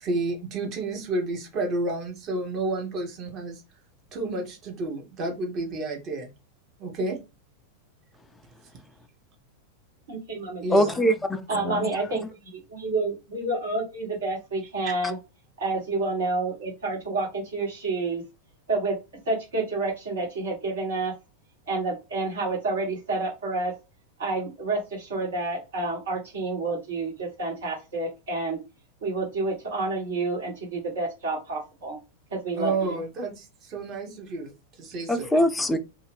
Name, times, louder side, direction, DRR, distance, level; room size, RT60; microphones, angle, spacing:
voice 1, 0.0-3.6 4.1-6.3 6.8-7.2 10.6-10.9 14.8-14.9 32.6-34.5 34.8-35.4, right 2 dB, 35° right, 1.0 m, -30 dB
voice 2, 10.1-11.0 11.5-15.2 15.6-18.2 18.7-19.0 19.2-21.1 21.7-23.7 24.2-28.6 29.0-32.0 32.3-33.0, right 3 dB, 60° right, 1.5 m, -29 dB
voice 3, 10.7-11.8 35.1-35.8, equal, 10° left, 0.4 m, -23 dB
2.6 x 2.4 x 3.2 m
figure-of-eight pair, 90°, 0 cm